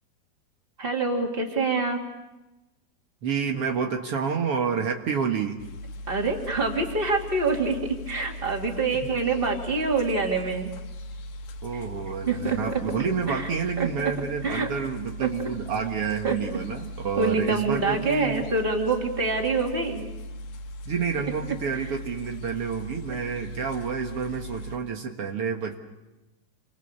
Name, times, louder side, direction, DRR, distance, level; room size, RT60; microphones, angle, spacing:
voice 1, 0.8-2.0 6.1-10.7 11.7-11.8 12.3-12.8 13.3-13.5 13.8-14.1 14.4-14.7 15.2-15.3 16.2-16.4 17.2-20.1, right 3 dB, 15° right, 1 dB, 2.4 m, -26 dB
voice 2, 3.2-5.6 8.9-9.0 11.6-18.4 20.8-25.8, right 6 dB, 90° right, 3 dB, 1.2 m, -29 dB
sound 1, 5.6-24.8, equal, 75° left, 3.5 m, -39 dB
29.0 x 25.5 x 6.9 m, 1.0 s
omnidirectional pair, 5.0 m